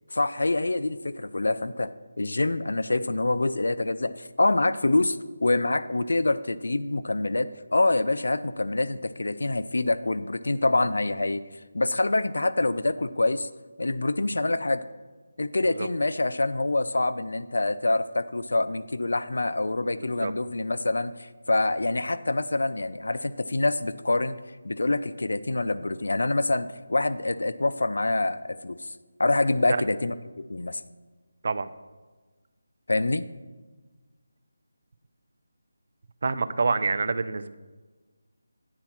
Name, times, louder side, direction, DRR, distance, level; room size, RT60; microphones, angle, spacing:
voice 1, 0.1-1.9 2.2-11.4 11.7-13.5 13.8-14.8 15.4-24.4 24.6-28.9 29.2-30.8 32.9-33.2, left 2 dB, 80° left, 14 dB, 0.4 m, -26 dB
voice 2, 20.0-20.3 31.4-31.7 36.2-37.5, right 4 dB, 50° right, 13 dB, 0.4 m, -27 dB
8.7 x 4.2 x 5.9 m, 1.3 s
figure-of-eight pair, 165°, 0 cm